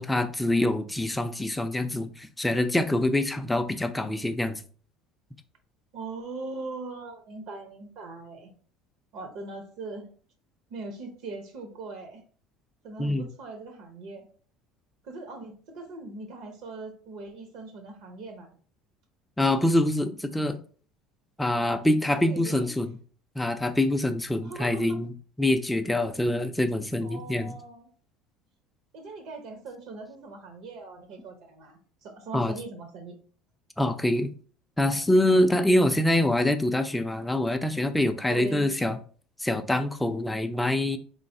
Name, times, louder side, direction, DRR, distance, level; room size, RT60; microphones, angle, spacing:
voice 1, 0.0-4.6 13.0-13.3 19.4-20.6 21.4-23.0 23.4-25.1 25.4-27.5 32.3-32.5 33.8-34.3 34.8-39.0 39.4-41.0, left 1 dB, 5° left, 9 dB, 0.4 m, -25 dB
voice 2, 5.9-8.5 9.1-10.1 10.7-12.2 12.8-14.3 15.0-18.5 22.0-22.7 24.4-25.0 27.0-27.9 28.9-33.2 38.3-38.7, right 3 dB, 70° right, 5 dB, 0.8 m, -40 dB
3.9 x 3.1 x 2.7 m, 0.43 s
supercardioid pair, 120°, 0 cm